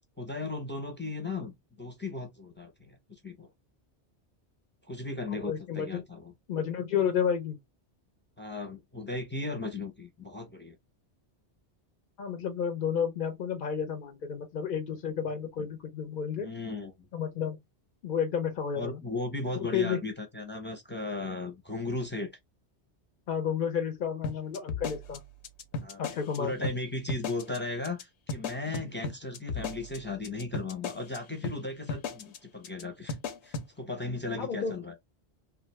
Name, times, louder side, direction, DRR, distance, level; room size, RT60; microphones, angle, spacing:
voice 1, 0.2-3.5 4.9-6.3 8.4-10.7 16.4-16.9 18.7-22.3 25.7-26.0 26.4-33.2 33.4-34.9, left 2 dB, 15° left, 0.5 m, -36 dB
voice 2, 5.4-6.0 6.5-7.6 12.2-16.5 17.1-17.6 18.0-19.0 19.5-20.0 23.3-25.2 26.0-26.7 34.4-34.7, left 7 dB, 55° left, 0.6 m, -31 dB
sound 1, 24.2-26.4 26.6-26.8 27.1-27.6 27.8-28.0 28.3-31.2 31.4-31.6 31.9-32.4 32.6-32.8 33.1-33.7, left 4 dB, 80° left, 0.9 m, -35 dB
2.5 x 2.5 x 3.0 m
omnidirectional pair, 1.1 m